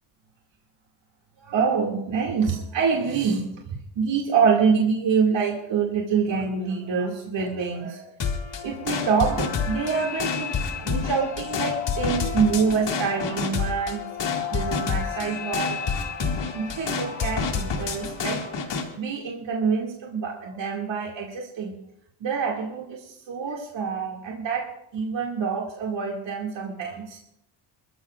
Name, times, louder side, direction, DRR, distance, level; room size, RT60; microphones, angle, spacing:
voice 1, 1.4-8.1 8.6-14.0 14.5-16.0 16.5-18.4 19.0-21.8 22.2-24.7 24.9-27.2, right 5 dB, 65° right, -2 dB, 2.4 m, -26 dB
sound 1, 8.2-18.9, left 5 dB, 60° left, 2.3 m, -28 dB
27.5 x 14.0 x 2.5 m, 0.79 s
cardioid pair, 115°, 47 cm